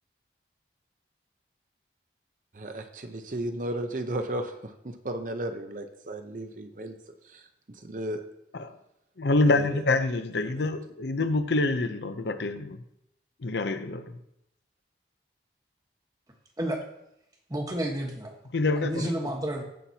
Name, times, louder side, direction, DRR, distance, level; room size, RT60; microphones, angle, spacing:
voice 1, 2.5-7.0 7.3-7.4 7.8-8.2 9.5-9.8 10.4-10.7, right 1 dB, 45° right, 0.7 m, -34 dB
voice 2, 9.2-12.8 13.4-14.2 18.5-19.1, left 2 dB, 75° left, 0.6 m, -26 dB
voice 3, 17.5-18.3 18.8-19.6, right 1 dB, 20° right, 1.2 m, -30 dB
15.5 x 5.8 x 2.8 m
head